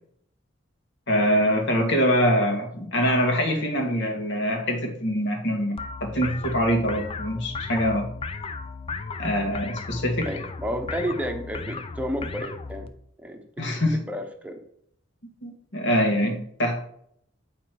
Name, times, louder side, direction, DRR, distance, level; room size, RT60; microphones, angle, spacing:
voice 1, 1.1-8.1 9.2-10.3 13.6-14.0 15.4-16.8, equal, 65° left, 2 dB, 1.7 m, -24 dB
sound 1, 5.8-12.9, left 4 dB, 30° left, 0.5 m, -35 dB
voice 2, 10.2-12.9 13.2-14.6 15.8-16.0, equal, 5° right, 4 dB, 0.9 m, -32 dB
9.2 x 4.2 x 4.6 m, 0.70 s
head